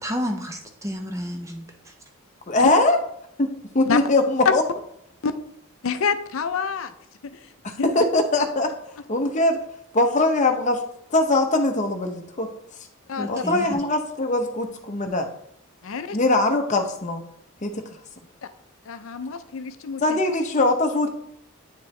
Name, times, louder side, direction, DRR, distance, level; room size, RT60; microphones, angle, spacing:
voice 1, 0.0-1.6 13.2-13.8, equal, 15° right, 4 dB, 0.6 m, -30 dB
voice 2, 2.5-3.0 3.4-3.5 3.7-4.6 7.6-8.7 9.1-9.6 9.9-10.8 11.1-12.5 13.3-15.3 16.1-17.2 17.6-17.8 20.0-21.1, left 2 dB, 35° left, 5 dB, 0.7 m, -21 dB
voice 3, 5.8-6.9 7.2-7.5 7.8-7.9 13.1-13.4 15.8-16.2 18.8-20.2, left 5 dB, 65° left, 11 dB, 0.5 m, -28 dB
8.9 x 4.5 x 3.2 m, 0.72 s
head